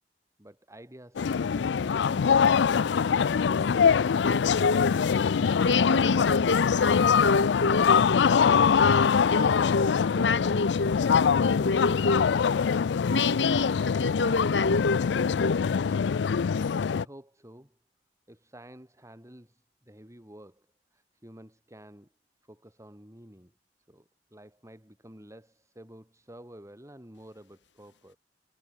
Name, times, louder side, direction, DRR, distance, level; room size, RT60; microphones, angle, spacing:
voice 1, 0.4-2.8 16.9-17.8 18.3-20.7 20.9-22.1 22.4-23.5 23.9-28.2, right 1 dB, 15° right, 4.5 m, -51 dB
sound 1, 1.2-17.0, left 6 dB, 75° left, 0.4 m, -23 dB
voice 2, 4.2-5.1 5.6-12.4 13.1-15.8, left 3 dB, 90° left, 1.8 m, -28 dB
head